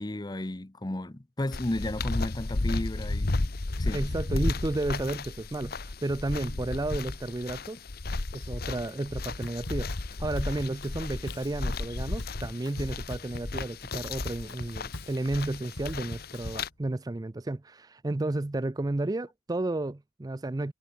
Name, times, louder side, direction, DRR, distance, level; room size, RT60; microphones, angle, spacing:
voice 1, 0.0-3.4 3.8-4.0, left 1 dB, 20° left, 0.8 m, -33 dB
sound 1, 1.5-16.7, left 2 dB, 55° left, 1.0 m, -33 dB
voice 2, 3.9-7.8 8.3-20.7, right 2 dB, 20° right, 0.4 m, -32 dB
Drum kit / Drum, 9.4-16.7, left 1 dB, 75° left, 3.4 m, -43 dB
head